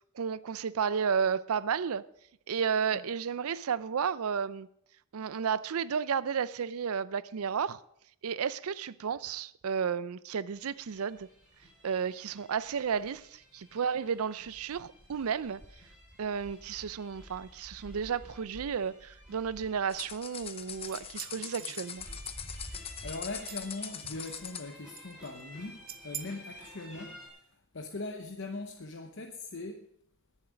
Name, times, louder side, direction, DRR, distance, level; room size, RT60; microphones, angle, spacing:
voice 1, 0.1-2.0 2.5-4.7 5.1-7.8 8.2-11.3 11.8-15.6 16.2-22.1, right 6 dB, 85° right, 0.5 m, -32 dB
sound 1, 10.5-27.3, equal, 5° right, 5.3 m, -51 dB
sound 2, 19.9-24.7, left 8 dB, 25° left, 0.7 m, -42 dB
sound 3, 20.5-22.6 23.1-23.8 24.2-24.7 24.9-25.4 25.9-26.2, right 10 dB, 45° right, 0.9 m, -46 dB
voice 2, 22.7-29.9, left 3 dB, 60° left, 0.9 m, -41 dB
19.5 x 7.3 x 5.1 m
head